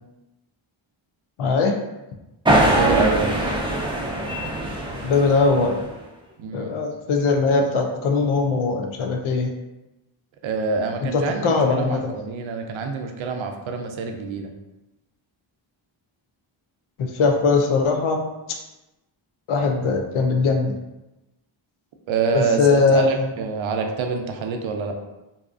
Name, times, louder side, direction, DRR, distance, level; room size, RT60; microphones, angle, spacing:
voice 1, 1.4-1.8 5.0-5.8 6.5-9.5 11.0-12.1 17.0-18.3 19.5-20.7 22.3-23.3, left 4 dB, 80° left, 4 dB, 0.6 m, -20 dB
sound 1, 2.5-5.9, right 1 dB, 10° right, 0.5 m, -22 dB
voice 2, 2.5-3.3 6.4-6.7 10.4-14.5 22.1-25.0, right 4 dB, 75° right, 4 dB, 0.5 m, -26 dB
2.7 x 2.3 x 2.4 m, 0.99 s
cardioid pair, 75°, 49 cm